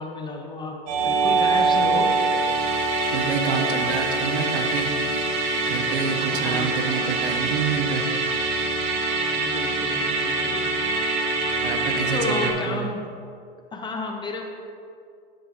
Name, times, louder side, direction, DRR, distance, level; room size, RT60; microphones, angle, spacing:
voice 1, 0.0-2.2 6.2-7.2 9.4-10.7 11.9-13.0 13.7-14.4, left 3 dB, 15° left, 2 dB, 0.5 m, -32 dB
Musical instrument, 0.9-12.5, right 3 dB, 45° right, 1.2 m, -24 dB
voice 2, 3.1-4.9 5.7-8.1 11.6-12.9, right 7 dB, 65° right, 4 dB, 0.9 m, -28 dB
10.0 x 5.6 x 2.5 m, 2.4 s
hypercardioid pair, 115°, 29 cm